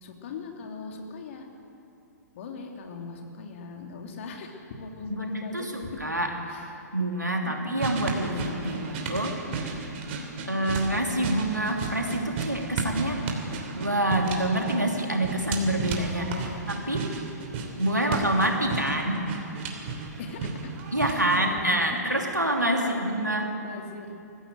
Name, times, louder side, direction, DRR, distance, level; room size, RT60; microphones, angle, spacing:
voice 1, 0.0-1.5 2.3-6.0 6.5-6.8 7.4-7.9 8.7-8.8 10.5-10.8 16.2-16.7 18.4-19.0 20.2-20.7 21.1-22.1 22.6-24.2, left 3 dB, 45° left, 2 dB, 2.8 m, -39 dB
voice 2, 5.5-6.4 6.9-9.4 10.5-13.3 13.8-16.3 16.7-17.1 17.8-19.2 20.9-23.5, right 1 dB, 90° right, 1 dB, 2.9 m, -26 dB
sound 1, 7.8-21.4, right 4 dB, 40° right, 3.1 m, -34 dB
22.0 x 15.0 x 8.0 m, 2.7 s
figure-of-eight pair, 115°, 9 cm